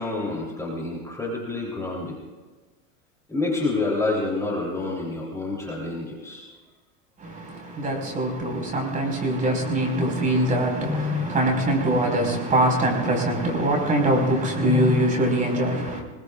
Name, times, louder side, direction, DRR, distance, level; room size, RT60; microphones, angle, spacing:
voice 1, 0.0-2.2 3.3-6.4 10.9-11.3 14.6-15.0, left 3 dB, 5° left, 3.2 m, -28 dB
voice 2, 7.2-16.0, right 1 dB, 20° right, 4.8 m, -23 dB
24.5 x 21.5 x 2.4 m
supercardioid pair, 140°, 40 cm